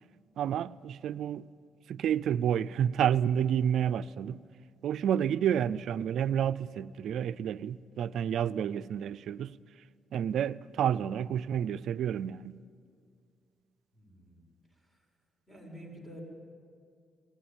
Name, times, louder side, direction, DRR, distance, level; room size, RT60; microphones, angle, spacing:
voice 1, 0.4-1.5 1.9-4.4 4.8-9.5 10.1-12.5, right 9 dB, 70° right, 15 dB, 0.5 m, -30 dB
voice 2, 13.9-14.5 14.9-15.0 15.5-16.2, equal, 15° left, 1 dB, 7.1 m, -49 dB
19.5 x 19.0 x 9.0 m, 2.2 s
cardioid pair, 90°, 0 cm